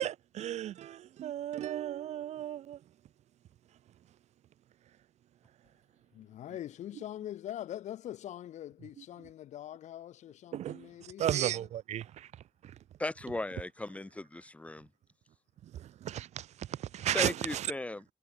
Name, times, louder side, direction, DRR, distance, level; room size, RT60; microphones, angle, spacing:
voice 1, 0.0-2.8 10.5-10.9 11.2-12.3 15.7-17.7, right 11 dB, 70° right, 0.8 m, -34 dB
voice 2, 6.1-11.7 13.9-14.1, left 12 dB, 90° left, 2.6 m, -43 dB
voice 3, 13.0-14.9 17.1-18.1, left 2 dB, 10° left, 3.6 m, -37 dB
cardioid pair, 150°, 12 cm